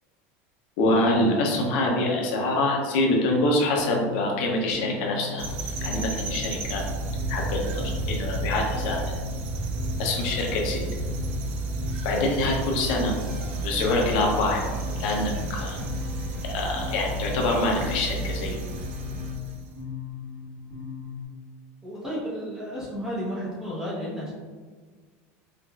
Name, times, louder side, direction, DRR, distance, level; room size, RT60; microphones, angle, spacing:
voice 1, 0.8-6.8 7.3-9.0 10.0-10.8 12.0-13.1 13.6-14.7 15.0-15.8 16.4-18.6, left 2 dB, 60° left, 0 dB, 0.6 m, -25 dB
sound 1, 3.7-21.2, left 7 dB, 30° left, 1.2 m, -38 dB
sound 2, 5.4-19.7, right 3 dB, 85° right, 0.5 m, -32 dB
sound 3, 12.6-19.3, equal, 65° right, 1.0 m, -41 dB
voice 2, 21.8-24.3, equal, 10° right, -7 dB, 0.8 m, -32 dB
4.7 x 2.4 x 2.3 m, 1.6 s
cardioid pair, 170°, 7 cm